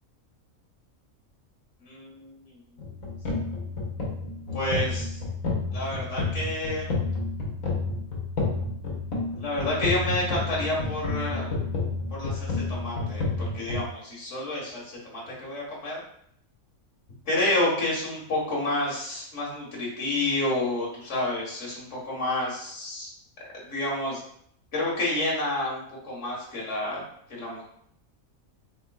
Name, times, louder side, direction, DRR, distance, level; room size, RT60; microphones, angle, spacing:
voice 1, 1.8-2.3 4.5-5.2 5.7-6.9 9.4-11.5 12.1-15.0 15.3-16.0 17.3-23.1 23.6-24.2 24.7-27.0 27.3-27.6, left 1 dB, 60° left, -4 dB, 1.9 m, -29 dB
sound 1, 2.8-13.8, left 3 dB, 75° left, 1.5 m, -30 dB
5.3 x 3.7 x 2.4 m, 0.68 s
omnidirectional pair, 1.4 m